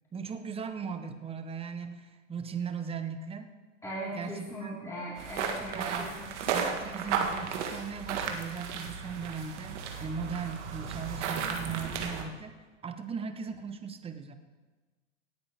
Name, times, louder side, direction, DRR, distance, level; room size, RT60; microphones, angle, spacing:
voice 1, 0.1-3.5 4.1-4.8 5.7-6.2 6.5-12.5 12.8-14.3, right 6 dB, 15° right, 8 dB, 0.9 m, -38 dB
voice 2, 3.8-6.3, right 1 dB, 10° left, -8 dB, 4.4 m, -39 dB
sound 1, 5.2-12.2, right 6 dB, 70° right, 1.8 m, -34 dB
17.5 x 9.3 x 3.6 m, 1.3 s
hypercardioid pair, 115°, 37 cm